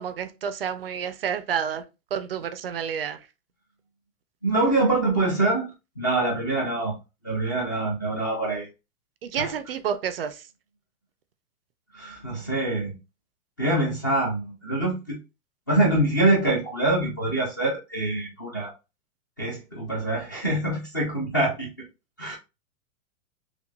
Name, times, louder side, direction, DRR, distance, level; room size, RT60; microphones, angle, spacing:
voice 1, 0.0-1.8 2.1-3.2 9.2-10.3, right 8 dB, 45° right, 0.4 m, -29 dB
voice 2, 4.4-5.7 6.0-6.9 7.2-8.7 9.4-9.5 11.9-13.0 13.6-15.2 15.7-18.7 19.4-21.7 22.2-22.3, right 2 dB, 15° left, 0.4 m, -25 dB
5.8 x 2.3 x 2.2 m
hypercardioid pair, 170°, 41 cm